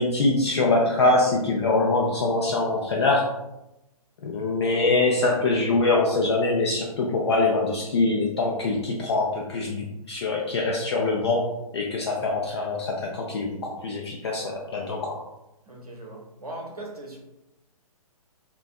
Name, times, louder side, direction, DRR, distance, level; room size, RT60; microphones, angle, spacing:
voice 1, 0.0-3.3 4.2-11.5 11.7-15.2, left 3 dB, 45° left, -1 dB, 0.4 m, -24 dB
voice 2, 15.7-17.2, right 1 dB, 90° right, 0 dB, 0.7 m, -39 dB
2.5 x 2.2 x 2.3 m, 0.92 s
figure-of-eight pair, 125°, 19 cm